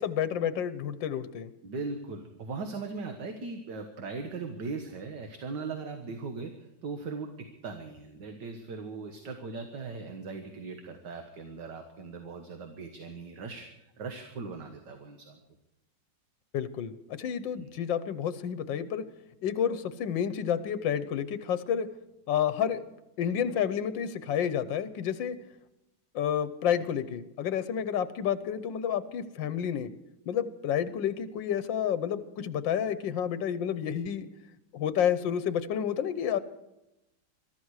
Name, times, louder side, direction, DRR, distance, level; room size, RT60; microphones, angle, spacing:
voice 1, 0.0-1.5 16.5-19.0 19.4-21.9 22.3-22.8 23.2-25.4 26.1-29.9 30.3-34.3 34.7-36.4, left 9 dB, 85° left, 13 dB, 1.6 m, -30 dB
voice 2, 1.6-6.5 6.8-15.4 17.5-17.6, right 4 dB, 70° right, 5 dB, 2.0 m, -39 dB
22.5 x 13.5 x 4.8 m, 0.93 s
omnidirectional pair, 2.0 m